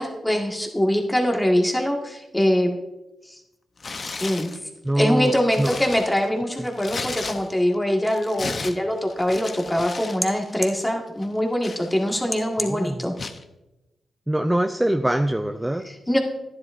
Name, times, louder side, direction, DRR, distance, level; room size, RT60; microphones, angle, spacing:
voice 1, 0.0-2.7 3.3-3.4 4.2-4.5 4.9-13.1 16.1-16.2, equal, 10° left, 1 dB, 1.7 m, -23 dB
Tearing, 3.8-4.6 5.1-7.7 8.0-10.2 10.5-10.7 11.2-12.4 13.2-13.4, left 3 dB, 45° left, 0.7 m, -35 dB
voice 2, 4.8-5.8 6.6-6.7 12.6-13.1 14.3-15.9, right 1 dB, 10° right, 7 dB, 0.4 m, -24 dB
12.5 x 10.5 x 2.6 m, 1.0 s
cardioid pair, 70°, 0 cm